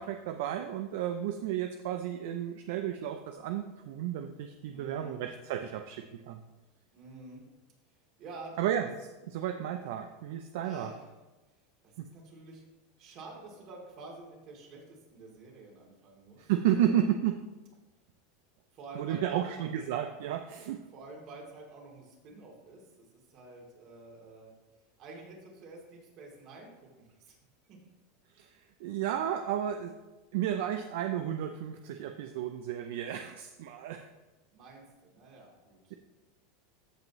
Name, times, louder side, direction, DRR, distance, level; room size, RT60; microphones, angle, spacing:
voice 1, 0.0-6.4 8.6-8.9 9.3-10.9 12.0-12.1 16.4-17.4 19.0-20.8 28.3-28.5 28.8-29.9 30.3-34.1, right 10 dB, 70° right, 6 dB, 0.5 m, -32 dB
voice 2, 4.7-5.2 6.9-7.4 8.2-8.6 10.6-11.1 11.8-12.6 13.0-17.1 18.7-19.5 20.9-24.5 25.0-27.4 27.7-27.8 34.5-35.9, right 2 dB, 50° right, -1 dB, 3.0 m, -49 dB
14.5 x 5.3 x 3.2 m, 1.1 s
hypercardioid pair, 110°, 0 cm